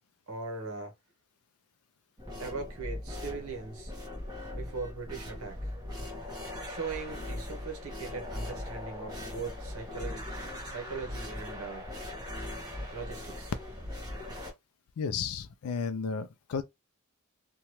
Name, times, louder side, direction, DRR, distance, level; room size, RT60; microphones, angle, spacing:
voice 1, 0.3-0.9 2.4-3.9 4.5-5.7 6.6-11.8 12.9-13.5, right 4 dB, 75° right, 0.9 m, -40 dB
sound 1, 2.2-14.5, left 1 dB, 20° right, 0.9 m, -40 dB
voice 2, 15.0-16.6, left 5 dB, 80° left, 0.4 m, -33 dB
2.8 x 2.2 x 3.0 m
head